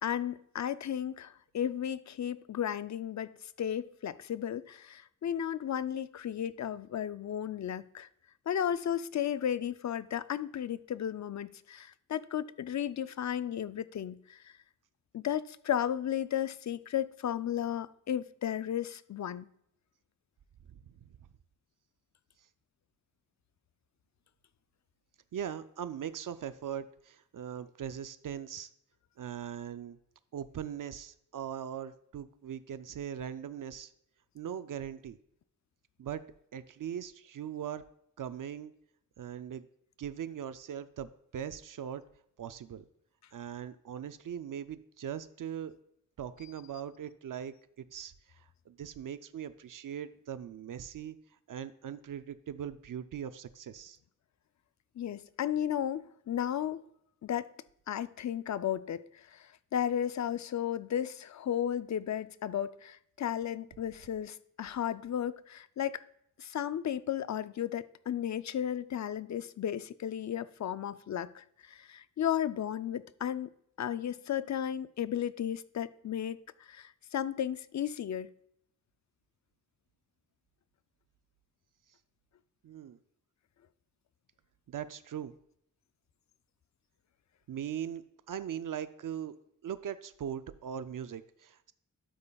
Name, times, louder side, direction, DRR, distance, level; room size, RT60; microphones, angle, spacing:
voice 1, 0.0-3.3 3.6-8.1 8.5-14.5 15.1-19.5 55.0-56.8 57.2-57.5 57.9-66.0 66.4-73.5 73.8-76.4 76.7-78.3, left 10 dB, 60° left, 0.4 m, -34 dB
voice 2, 20.7-21.1 25.3-28.7 29.2-30.0 30.3-33.9 34.3-35.2 36.0-36.2 36.5-37.8 38.2-38.7 39.2-39.7 40.0-42.0 42.4-42.9 43.3-45.7 46.2-51.2 51.5-54.0 82.6-83.0 84.7-85.3 87.5-89.3 89.6-91.7, right 9 dB, 75° right, 0.5 m, -40 dB
12.5 x 8.6 x 2.3 m
wide cardioid pair, 90°, 33 cm